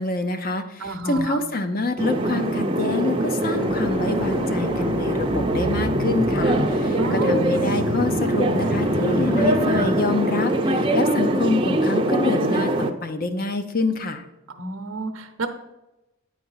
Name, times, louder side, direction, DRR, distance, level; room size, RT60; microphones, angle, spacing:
voice 1, 0.0-14.2, left 2 dB, 45° left, 8 dB, 0.7 m, -26 dB
voice 2, 0.8-1.4 7.0-7.4 14.5-15.5, right 2 dB, 85° right, 6 dB, 0.8 m, -30 dB
sound 1, 2.0-12.9, right 1 dB, 25° right, 0.6 m, -23 dB
sound 2, 3.4-10.4, left 1 dB, 65° left, 1.6 m, -29 dB
9.2 x 4.6 x 5.5 m, 1.0 s
head